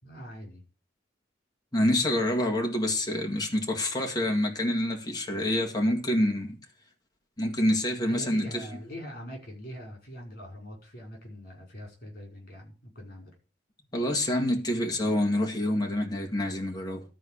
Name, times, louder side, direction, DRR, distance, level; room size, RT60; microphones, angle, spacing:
voice 1, 0.0-0.6 8.0-13.3, equal, 50° left, 5.4 m, -43 dB
voice 2, 1.7-6.6 7.4-8.6 13.9-17.0, left 1 dB, 20° left, 2.0 m, -27 dB
12.5 x 4.8 x 8.4 m
head